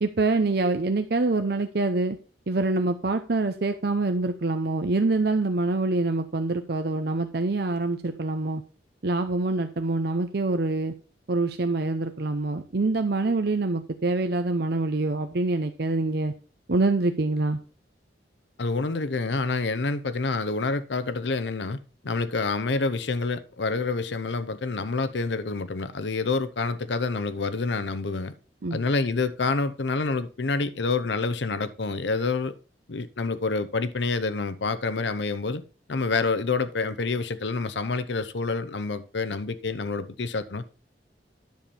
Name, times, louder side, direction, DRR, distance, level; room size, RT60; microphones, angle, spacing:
voice 1, 0.0-2.2 2.5-8.6 9.0-10.9 11.3-16.3 16.7-17.6 28.6-28.8, right 2 dB, 60° right, 0.7 m, -25 dB
voice 2, 18.6-28.3 28.7-32.6 32.9-35.6 35.9-40.7, left 3 dB, 85° left, 0.8 m, -27 dB
10.5 x 7.0 x 4.2 m
head